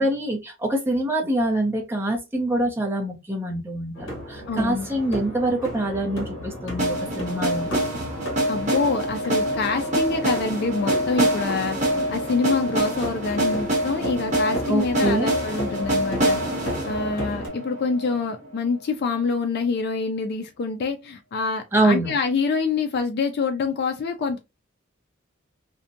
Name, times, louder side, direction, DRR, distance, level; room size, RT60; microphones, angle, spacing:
voice 1, 0.0-7.7 14.7-15.3 21.7-22.1, right 1 dB, 10° right, 0.6 m, -25 dB
sound 1, 3.9-17.5, left 1 dB, 70° left, 0.9 m, -34 dB
voice 2, 4.5-4.9 8.5-11.8 12.1-16.4 16.8-24.4, left 4 dB, 50° left, 0.3 m, -26 dB
sound 2, 6.8-18.7, right 1 dB, 35° right, 0.9 m, -26 dB
2.6 x 2.1 x 2.5 m
head